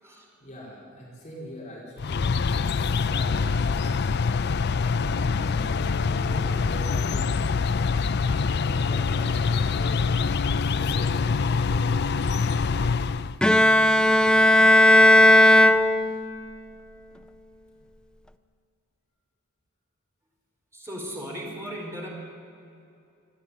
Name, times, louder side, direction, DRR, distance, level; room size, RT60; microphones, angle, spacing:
voice 1, 0.4-2.4 2.9-4.4 4.8-5.3 6.1-7.8 8.2-10.0 10.7-12.4 13.1-13.8, equal, 35° left, -4 dB, 5.0 m, -43 dB
sound 1, 2.0-13.4, left 5 dB, 55° left, 0.5 m, -25 dB
sound 2, 5.0-8.3, right 1 dB, 60° right, 3.3 m, -44 dB
Bowed string instrument, 13.4-16.5, left 1 dB, 5° left, 0.6 m, -16 dB
voice 2, 20.7-22.1, equal, 15° right, -2 dB, 4.7 m, -36 dB
28.0 x 10.5 x 10.0 m, 2.6 s
head